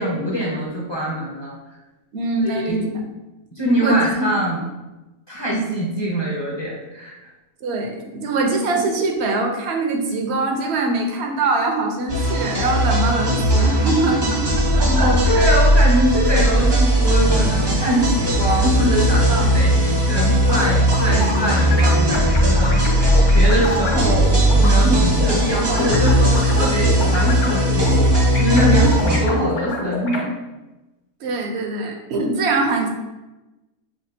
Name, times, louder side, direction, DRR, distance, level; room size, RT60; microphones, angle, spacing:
voice 1, 0.0-1.6 2.4-2.8 3.6-4.6 5.3-7.1 14.8-22.7 23.3-28.1 28.4-30.3, equal, 30° left, -5 dB, 0.5 m, -23 dB
voice 2, 2.1-3.0 3.8-4.0 7.6-15.3 16.2-16.3 19.3-19.5 28.7-28.9 31.2-32.9, right 3 dB, 60° right, 2 dB, 0.7 m, -23 dB
sound 1, 12.1-29.2, equal, 35° right, 0.4 m, -17 dB
sound 2, 20.4-24.7 25.1-30.2, left 3 dB, 85° left, 1.4 m, -28 dB
5.7 x 2.3 x 2.6 m, 1.0 s
omnidirectional pair, 1.5 m